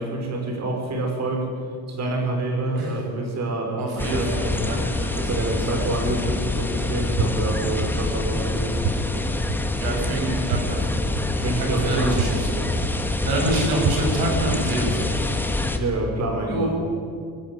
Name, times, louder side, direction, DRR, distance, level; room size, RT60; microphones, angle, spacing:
voice 1, 0.0-1.5 1.9-4.8 5.1-8.8 9.1-9.2 10.1-10.2 11.4-12.7 15.7-16.8, right 2 dB, 45° right, 3 dB, 5.2 m, -27 dB
voice 2, 3.8-5.2 9.8-11.0 11.6-12.6 13.1-15.2 16.5-16.8, right 2 dB, 80° right, 1 dB, 7.6 m, -27 dB
sound 1, 4.0-15.8, left 2 dB, 5° left, 1.5 m, -26 dB
sound 2, 7.2-7.3 7.8-7.9 8.8-8.9 9.5-9.6 10.5-10.6 11.1-11.2 12.2-12.3 12.8-12.9 13.8-13.9 14.5-14.6, right 9 dB, 65° right, 1.5 m, -24 dB
22.5 x 19.0 x 9.8 m, 2.3 s
cardioid pair, 180°, 36 cm